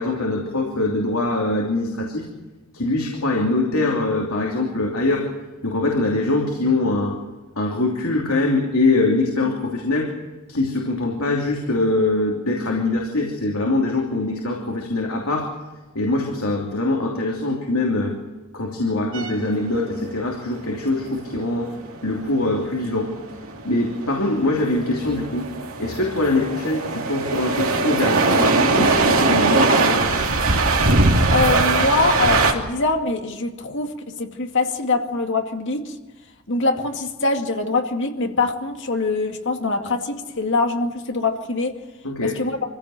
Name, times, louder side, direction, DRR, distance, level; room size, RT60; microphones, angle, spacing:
voice 1, 0.0-2.2 2.7-5.3 5.6-7.2 7.6-10.1 10.5-15.5 15.9-18.1 18.5-21.7 22.0-23.2 23.6-25.5 25.8-30.0 42.0-42.4, left 2 dB, 75° left, 2.9 m, -23 dB
sound 1, 19.1-32.5, right 3 dB, 65° right, 2.9 m, -20 dB
voice 2, 31.3-36.0 36.5-41.8 42.2-42.6, left 3 dB, 60° left, 2.3 m, -23 dB
25.5 x 16.0 x 7.7 m
head